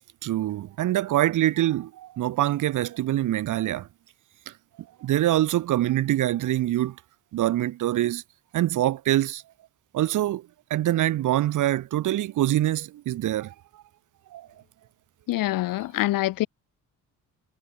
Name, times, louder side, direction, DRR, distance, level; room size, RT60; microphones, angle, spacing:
voice 1, 0.2-3.9 4.5-4.6 5.0-7.0 7.3-8.2 8.5-9.4 9.9-10.4 10.7-13.5 14.3-14.5, right 14 dB, 65° right, 4.1 m, -24 dB
voice 2, 15.3-16.5, left 16 dB, 80° left, 3.1 m, -25 dB
cardioid pair, 165°, 33 cm